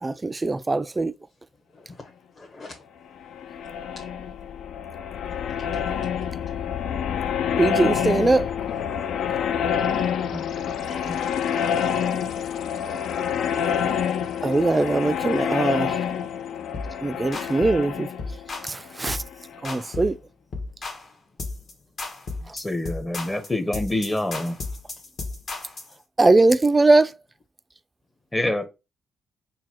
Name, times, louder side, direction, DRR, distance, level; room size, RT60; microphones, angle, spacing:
voice 1, 0.0-1.1 7.5-8.5 14.4-16.0 17.0-18.1 18.6-19.2 19.6-20.2 26.2-27.1, right 2 dB, 25° right, 0.3 m, -21 dB
voice 2, 1.7-2.1 2.4-2.8 9.9-11.2, left 3 dB, 40° left, 1.0 m, -41 dB
sound 1, 3.2-19.8, left 8 dB, 75° left, 0.3 m, -27 dB
sound 2, 16.7-17.0 17.3-17.8 18.2-18.7 19.1-19.3 19.6-20.2 20.5-21.1 21.4-21.7 22.0-25.9, left 3 dB, 55° left, 1.3 m, -34 dB
voice 3, 22.5-24.5 28.3-28.7, left 1 dB, 20° left, 0.8 m, -26 dB
3.9 x 2.3 x 4.3 m
supercardioid pair, 55°, 0 cm